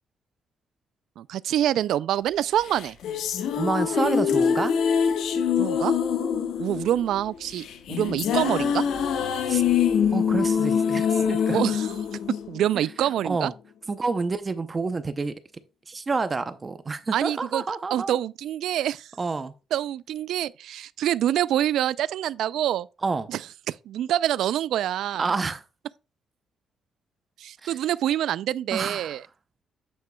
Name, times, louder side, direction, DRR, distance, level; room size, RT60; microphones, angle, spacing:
voice 1, 1.2-3.0 5.6-5.9 6.6-7.6 7.9-8.9 11.5-11.9 12.5-13.5 17.1-17.6 17.9-19.1 19.7-22.9 23.3-23.4 23.7-25.3 27.4-29.2, right 11 dB, 65° right, 0.3 m, -26 dB
sound 1, 2.7-13.1, left 7 dB, 70° left, 1.2 m, -24 dB
voice 2, 3.5-4.7 9.5-9.6 10.1-11.6 13.2-13.5 13.9-15.3 15.9-18.2 19.2-19.5 23.0-23.3 25.2-25.6 27.6-27.8 28.7-29.2, right 4 dB, 20° right, 0.6 m, -28 dB
8.4 x 7.4 x 2.2 m
cardioid pair, 170°, 0 cm